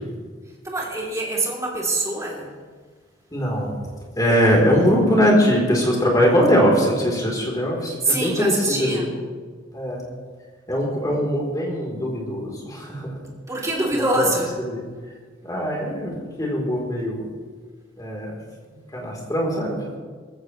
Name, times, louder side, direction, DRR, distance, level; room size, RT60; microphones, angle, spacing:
voice 1, 0.6-2.5 8.0-9.1 13.5-14.5, right 2 dB, 20° right, -3 dB, 3.1 m, -24 dB
voice 2, 3.3-3.7 4.1-9.0 9.7-10.0 10.7-13.2 14.0-14.4 14.6-14.8 15.4-17.3 18.0-18.4 18.7-19.8, equal, 20° left, -2 dB, 3.7 m, -21 dB
19.5 x 15.5 x 3.3 m, 1.5 s
head